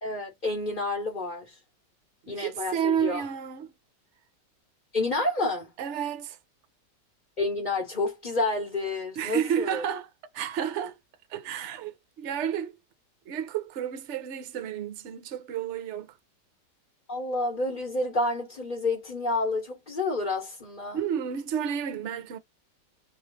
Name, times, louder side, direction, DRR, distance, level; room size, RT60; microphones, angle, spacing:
voice 1, 0.0-1.5 2.3-3.3 4.9-5.7 7.4-9.8 17.1-21.0, left 2 dB, 30° left, 1.2 m, -29 dB
voice 2, 2.3-3.7 5.8-6.4 9.2-11.0 11.3-12.8 13.3-16.1 20.9-22.4, right 9 dB, 55° right, 0.8 m, -31 dB
3.2 x 2.8 x 3.8 m
omnidirectional pair, 1.9 m